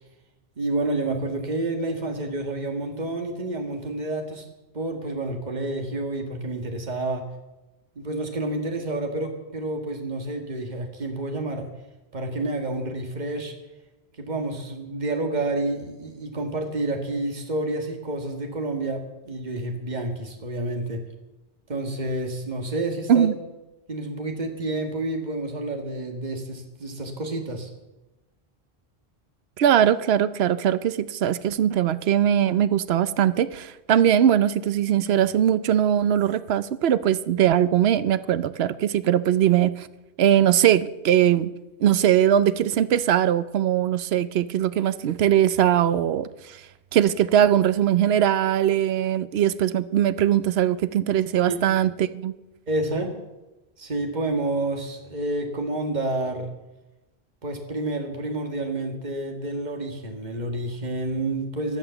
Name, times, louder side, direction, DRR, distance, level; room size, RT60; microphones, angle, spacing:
voice 1, 0.6-4.5 4.7-7.2 8.0-11.7 12.1-13.5 14.2-21.0 21.7-23.3 23.9-27.7 51.4-51.6 52.7-53.1 53.8-56.5 57.4-61.8, right 2 dB, 45° right, 4 dB, 1.9 m, -29 dB
voice 2, 29.6-39.9 40.2-41.5 41.8-46.6 46.9-52.3, right 10 dB, 75° right, 14 dB, 0.9 m, -21 dB
16.5 x 11.0 x 6.9 m, 1.0 s
omnidirectional pair, 1.1 m